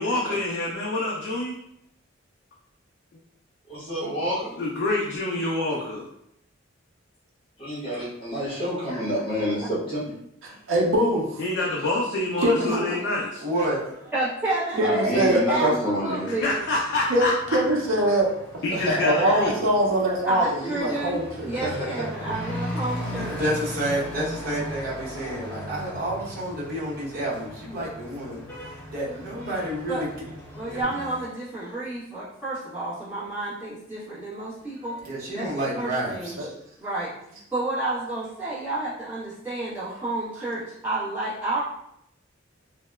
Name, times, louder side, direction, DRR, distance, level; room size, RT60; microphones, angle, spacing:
voice 1, 0.0-1.6 4.6-6.1 11.4-13.4 16.3-17.6 18.6-19.7, left 2 dB, 55° left, -2 dB, 0.4 m, -27 dB
voice 2, 3.7-4.5 7.6-10.0 14.7-16.4 18.7-19.5 21.5-22.0, equal, 25° left, -9 dB, 1.0 m, -28 dB
voice 3, 10.4-11.4 12.4-12.7 14.8-15.7 17.1-18.3 19.0-21.5 36.4-36.5, right 1 dB, 75° right, -1 dB, 0.5 m, -23 dB
voice 4, 13.4-14.1 22.2-22.4 23.3-30.1 30.6-31.1 31.6-31.8 35.0-36.3, right 1 dB, 45° right, -7 dB, 0.9 m, -30 dB
voice 5, 14.1-16.5 20.3-21.2 21.4-23.4 29.9-30.1 30.5-35.0 35.3-35.5 35.8-36.4 36.8-37.1 37.5-41.6, right 2 dB, 10° right, -12 dB, 0.9 m, -30 dB
Truck / Accelerating revving vroom, 16.4-30.8, left 1 dB, 10° left, 0.6 m, -38 dB
2.8 x 2.1 x 2.2 m, 0.76 s
head